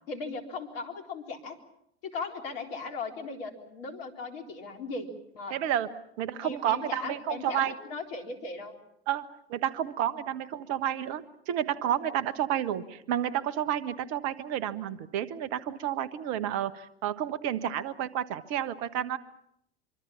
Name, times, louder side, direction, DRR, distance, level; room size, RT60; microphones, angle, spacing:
voice 1, 0.1-1.6 2.0-5.1 5.3-5.6 6.4-8.7, left 4 dB, 65° left, 4 dB, 4.0 m, -38 dB
voice 2, 5.5-5.9 6.2-7.7 9.1-19.2, right 10 dB, 55° right, 15 dB, 1.5 m, -30 dB
25.0 x 25.0 x 7.2 m, 0.75 s
figure-of-eight pair, 70°, 31 cm